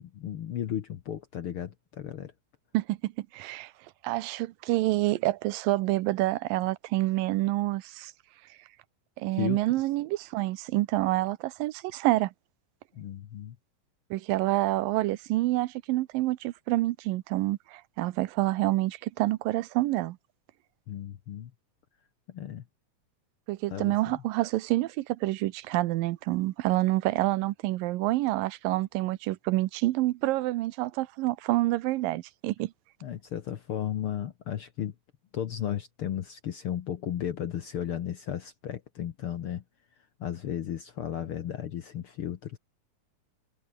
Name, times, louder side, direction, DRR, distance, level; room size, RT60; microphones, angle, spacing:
voice 1, 0.0-2.3 9.3-9.6 12.9-13.6 20.9-21.5 22.3-22.6 23.7-24.2 33.0-34.9 35.3-39.6 40.2-42.6, left 10 dB, 65° left, 1.4 m, -34 dB
voice 2, 2.7-3.7 4.0-8.1 9.2-12.3 14.1-20.2 23.5-32.7, right 17 dB, 85° right, 2.5 m, -27 dB
omnidirectional pair, 4.0 m